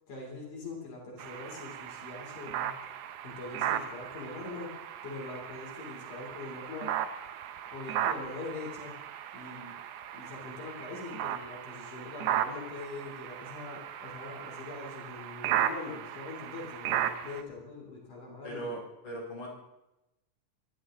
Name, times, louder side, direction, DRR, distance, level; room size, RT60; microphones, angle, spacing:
voice 1, 0.1-2.7 3.2-4.7 5.0-6.9 7.7-9.0 9.3-9.8 10.1-18.8, left 3 dB, 70° left, -1 dB, 4.7 m, -43 dB
sound 1, 1.2-17.4, right 10 dB, 75° right, 2.3 m, -36 dB
voice 2, 18.4-19.5, right 1 dB, 35° left, -3 dB, 5.0 m, -39 dB
26.0 x 11.5 x 3.8 m, 0.94 s
omnidirectional pair, 3.6 m